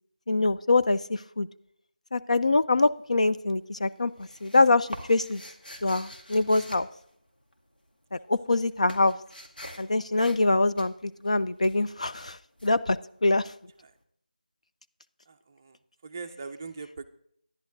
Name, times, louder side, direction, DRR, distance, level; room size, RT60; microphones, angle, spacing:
voice 1, 0.3-1.5 2.1-5.4 5.8-6.9 8.1-9.1 9.8-13.5, left 2 dB, 45° left, 12 dB, 0.4 m, -24 dB
sound 1, 2.9-3.5 3.8-7.8 8.1-13.7, equal, 80° left, 2.2 m, -45 dB
voice 2, 15.3-15.8 16.0-17.1, right 4 dB, 20° right, 7 dB, 0.4 m, -41 dB
10.5 x 10.0 x 3.9 m, 0.69 s
figure-of-eight pair, 165°, 5 cm